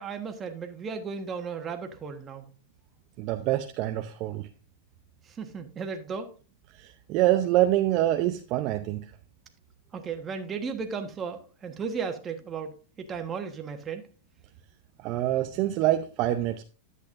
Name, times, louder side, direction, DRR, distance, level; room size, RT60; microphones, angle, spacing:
voice 1, 0.0-2.5 5.2-6.3 9.9-14.1, right 5 dB, 20° right, 5 dB, 1.3 m, -35 dB
voice 2, 3.2-4.5 6.8-9.0 15.0-16.6, right 14 dB, 45° right, 6 dB, 0.6 m, -25 dB
10.5 x 8.2 x 2.5 m, 0.35 s
supercardioid pair, 140°, 0 cm